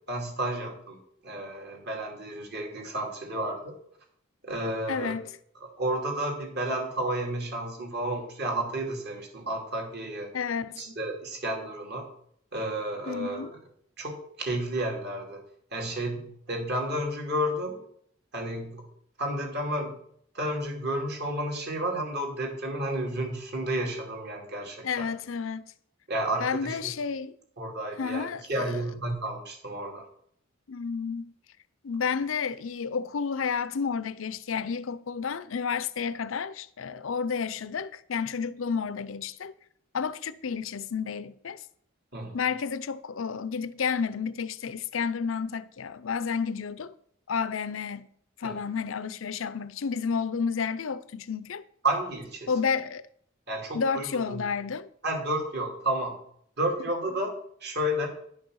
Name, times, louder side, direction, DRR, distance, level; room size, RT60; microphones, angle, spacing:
voice 1, 0.1-3.7 4.4-5.1 5.8-10.3 10.8-12.1 12.5-13.5 14.0-15.4 15.7-17.8 18.3-18.8 19.2-19.9 20.3-25.1 26.1-26.8 27.6-30.1 42.1-42.3 48.4-48.6 51.8-52.5 53.5-54.4 55.0-56.2 56.6-57.3 57.6-58.1, right 1 dB, 55° right, 2.7 m, -31 dB
voice 2, 4.9-5.3 10.3-10.8 13.1-13.5 24.8-25.6 26.4-27.4 28.0-28.8 30.7-31.3 31.8-39.5 39.9-41.6 42.3-46.9 47.3-48.1 48.4-51.6 52.5-53.0 53.7-54.9, left 6 dB, 80° left, 0.6 m, -31 dB
10.5 x 6.4 x 6.3 m
head